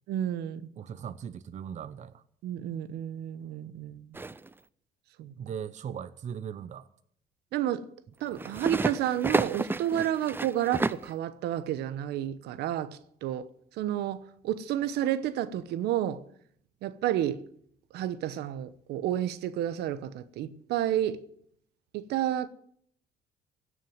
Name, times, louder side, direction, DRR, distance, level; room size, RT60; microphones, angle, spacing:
voice 1, 0.1-0.7 2.4-4.1 5.2-5.3 7.5-7.8 8.2-13.5 13.8-16.2 16.8-17.4 17.9-21.2 21.9-22.5, right 11 dB, 80° right, 1.0 m, -31 dB
voice 2, 0.8-2.2 5.4-6.9, right 8 dB, 45° right, 0.7 m, -39 dB
sound 1, 4.1-4.5 8.3-11.1, right 3 dB, 10° right, 0.5 m, -31 dB
17.0 x 6.4 x 9.2 m
cardioid pair, 110°, 17 cm